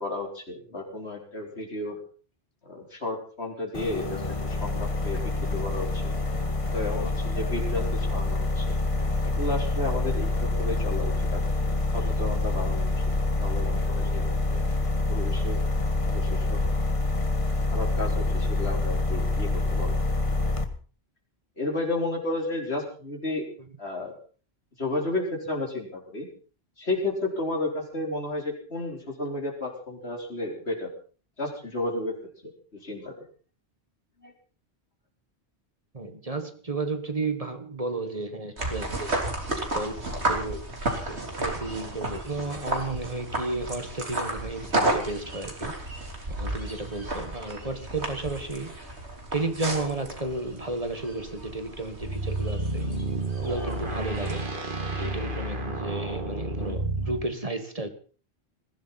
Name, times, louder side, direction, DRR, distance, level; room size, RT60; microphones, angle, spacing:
voice 1, 0.0-2.0 2.6-6.1 6.6-8.8 9.2-11.4 11.9-13.1 13.4-14.6 15.1-15.6 16.0-16.6 17.7-20.0 21.6-23.4 23.8-24.2 24.8-26.3 26.8-30.9 31.4-32.2 32.4-33.1 34.2-34.3 55.1-55.2, left 2 dB, 75° left, 1 dB, 4.3 m, -32 dB
sound 1, 3.7-20.7, left 2 dB, 30° left, 1.4 m, -26 dB
voice 2, 35.9-39.1 39.6-40.0 40.3-40.6 41.1-45.8 46.4-48.8 49.3-52.9 53.4-54.5 54.9-57.9, right 2 dB, 35° right, 8 dB, 1.7 m, -33 dB
sound 2, 38.6-54.5, right 2 dB, 80° right, 3.7 m, -33 dB
sound 3, 52.0-57.3, right 2 dB, 50° right, 2.5 m, -31 dB
21.0 x 15.5 x 4.2 m, 0.40 s
omnidirectional pair, 1.1 m